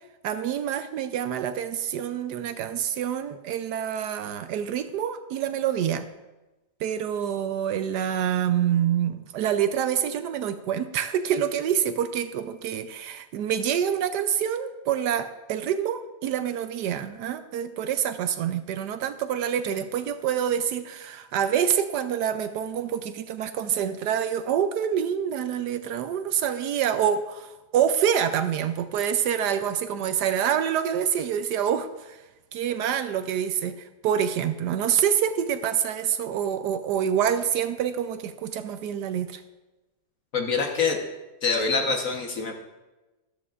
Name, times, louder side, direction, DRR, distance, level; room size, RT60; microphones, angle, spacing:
voice 1, 0.2-6.1 6.8-32.2 32.5-39.4, right 9 dB, 75° right, 10 dB, 1.1 m, -26 dB
voice 2, 40.3-41.0 41.4-42.6, left 4 dB, 50° left, 2 dB, 1.4 m, -25 dB
13.0 x 12.5 x 2.5 m, 1.1 s
omnidirectional pair, 2.0 m